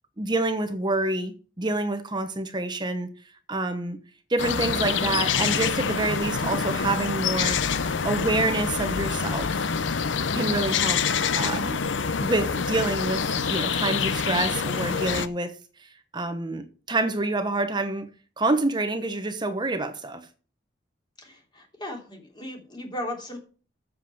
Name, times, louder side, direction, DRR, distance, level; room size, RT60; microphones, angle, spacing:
voice 1, 0.2-3.1 3.5-4.0 4.3-7.7 8.0-9.6 10.3-11.0 11.4-11.8 12.2-15.5 15.8-18.1 18.4-20.3, right 2 dB, 25° right, 1.0 m, -27 dB
sound 1, 4.4-15.3, left 6 dB, 85° left, 0.7 m, -26 dB
voice 2, 21.2-23.4, left 1 dB, 25° left, 3.4 m, -36 dB
7.5 x 7.4 x 7.8 m
head